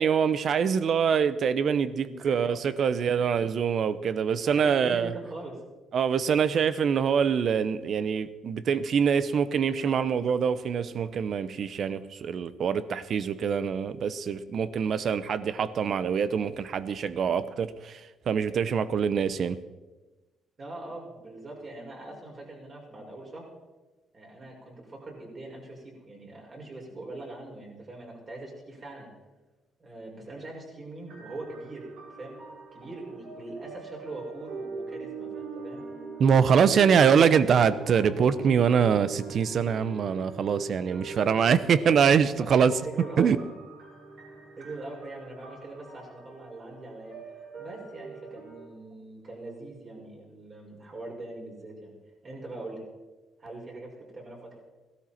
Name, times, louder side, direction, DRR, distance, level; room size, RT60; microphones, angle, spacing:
voice 1, 0.0-5.1 5.9-19.6 36.2-42.7 43.2-43.4, right 7 dB, 60° right, 15 dB, 0.7 m, -24 dB
voice 2, 2.0-3.3 4.5-5.6 20.6-23.5 24.1-29.1 29.8-31.9 32.2-32.4 32.7-35.8 36.4-37.0 42.4-43.3 44.6-47.3 47.6-51.9 52.2-52.8 53.4-54.6, right 2 dB, 40° right, -2 dB, 5.8 m, -42 dB
sound 1, 31.1-48.7, right 4 dB, 75° right, 5.5 m, -42 dB
16.5 x 12.5 x 4.4 m, 1.2 s
cardioid pair, 90°, 0 cm